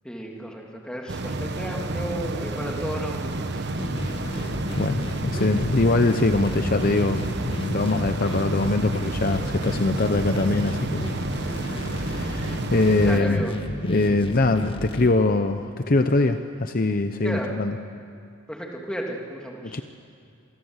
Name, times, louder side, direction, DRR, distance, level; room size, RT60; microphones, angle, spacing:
voice 1, 0.0-3.7 13.0-13.6 17.2-17.5 18.5-19.8, right 1 dB, 5° left, -1 dB, 2.8 m, -33 dB
sound 1, 1.1-13.2, right 2 dB, 50° right, 1.2 m, -30 dB
sound 2, 3.8-15.1, equal, 25° left, 1.7 m, -33 dB
voice 2, 4.8-11.1 11.5-13.4 13.9-17.7 19.7-19.8, left 2 dB, 40° left, 8 dB, 0.8 m, -23 dB
27.0 x 19.5 x 8.1 m, 2.5 s
head